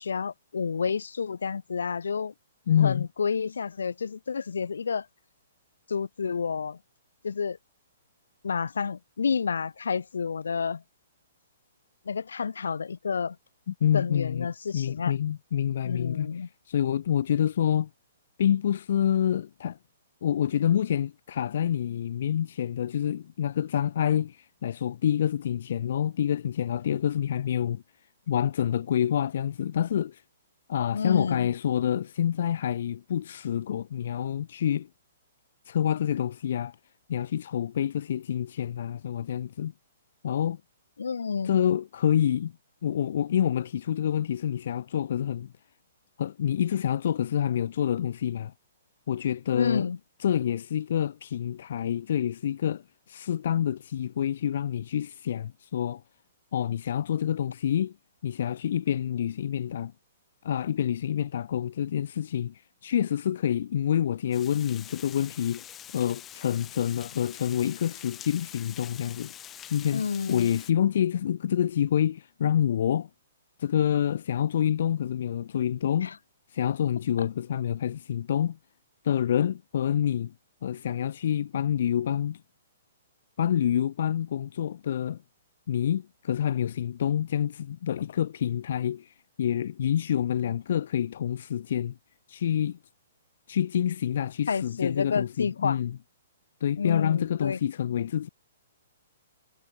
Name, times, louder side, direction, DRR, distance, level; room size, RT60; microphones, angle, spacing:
voice 1, 0.0-2.3 2.8-5.1 5.9-6.8 7.2-7.6 8.4-10.8 12.0-13.4 13.9-15.2 15.8-16.5 30.9-31.5 41.0-41.6 49.5-50.0 69.9-70.5 76.0-76.1 94.5-95.8 96.8-97.6, left 5 dB, 85° left, 3.2 m, -30 dB
voice 2, 2.7-3.1 13.7-14.5 14.7-16.3 16.7-17.9 18.4-19.8 20.2-27.8 28.3-30.2 30.7-34.9 35.7-36.7 37.1-39.7 40.2-40.6 41.4-42.5 42.8-45.5 46.2-48.5 49.1-49.9 50.2-56.0 56.5-57.9 58.2-59.9 60.4-65.6 65.9-70.0 70.3-73.1 73.6-76.2 76.5-78.6 79.0-80.3 80.6-82.4 83.4-85.2 85.7-91.9 92.3-92.8 93.5-96.0 96.6-98.3, left 9 dB, 60° left, 1.3 m, -27 dB
Water, 64.3-70.7, left 11 dB, 20° left, 6.3 m, -45 dB
hypercardioid pair, 145°, 0 cm